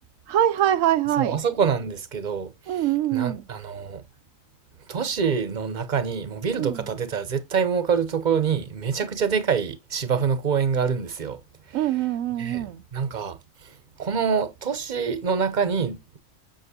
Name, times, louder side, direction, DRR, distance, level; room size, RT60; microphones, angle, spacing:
voice 1, 0.3-1.4 2.7-3.5 6.6-6.9 11.7-12.8, right 12 dB, 80° right, 1.1 m, -24 dB
voice 2, 1.2-4.0 4.9-11.4 11.7-11.9 12.4-16.2, right 6 dB, 40° right, 1.0 m, -26 dB
7.4 x 7.2 x 2.8 m
omnidirectional pair, 1.4 m